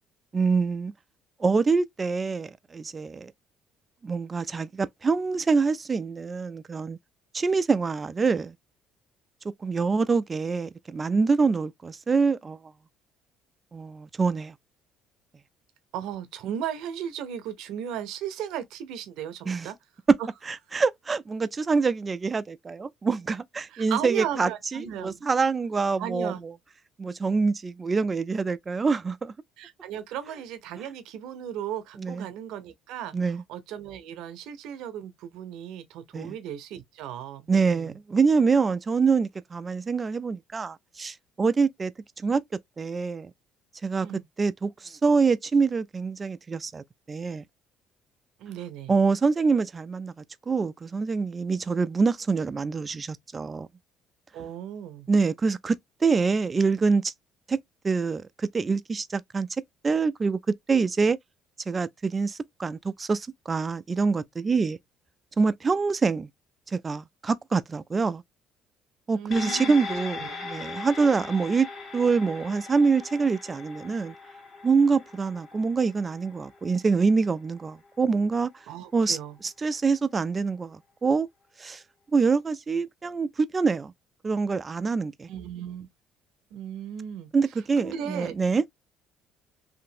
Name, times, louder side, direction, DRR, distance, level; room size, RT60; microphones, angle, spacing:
voice 1, 0.3-0.9 1.4-3.3 4.0-7.0 7.3-8.5 9.6-12.6 13.7-14.5 19.5-19.7 20.1-20.2 20.4-26.5 27.0-29.3 32.0-32.3 33.1-33.4 36.1-36.4 37.5-41.9 42.2-42.4 42.8-43.3 43.8-44.1 44.4-47.4 48.9-50.1 50.5-53.7 55.1-57.1 57.5-57.6 57.8-59.5 59.8-60.4 60.7-61.2 61.7-64.8 65.4-66.3 66.7-68.2 69.1-71.7 71.9-74.1 74.6-78.5 78.9-79.2 79.4-81.3 81.6-81.8 82.1-83.9 84.2-85.3 87.3-88.6, right 4 dB, 30° right, 0.3 m, -25 dB
voice 2, 15.9-19.8 23.7-25.2 26.0-26.4 29.6-37.9 44.0-44.2 48.4-48.9 54.3-55.1 69.1-70.4 78.7-79.4 85.3-85.9 86.5-87.3 87.8-88.4, right 9 dB, 75° right, 0.6 m, -36 dB
sound 1, 69.3-78.0 78.4-78.5, left 4 dB, 45° left, 1.6 m, -40 dB
2.8 x 2.5 x 2.6 m
supercardioid pair, 70°, 0 cm